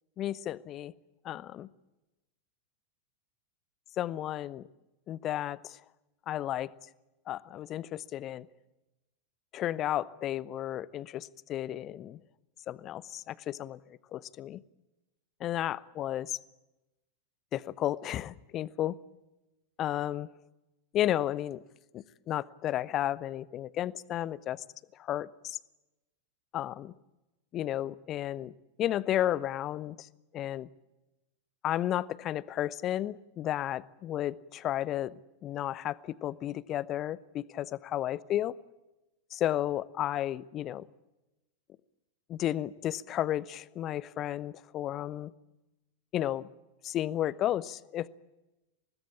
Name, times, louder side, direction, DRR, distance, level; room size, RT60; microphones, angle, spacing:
voice 1, 0.2-0.9 1.2-1.7 4.0-4.6 5.1-5.8 6.3-6.7 7.3-8.5 9.5-12.2 12.7-13.8 14.1-14.6 15.4-16.4 17.5-19.0 19.8-20.3 20.9-21.6 21.9-24.6 25.0-25.6 26.5-26.9 27.5-28.5 28.8-30.1 30.3-30.7 31.6-38.5 39.3-40.8 42.3-45.3 46.1-46.5 46.8-48.1, left 12 dB, 30° left, 21 dB, 0.8 m, -33 dB
24.5 x 20.0 x 8.6 m, 1.0 s
figure-of-eight pair, 90°, 0 cm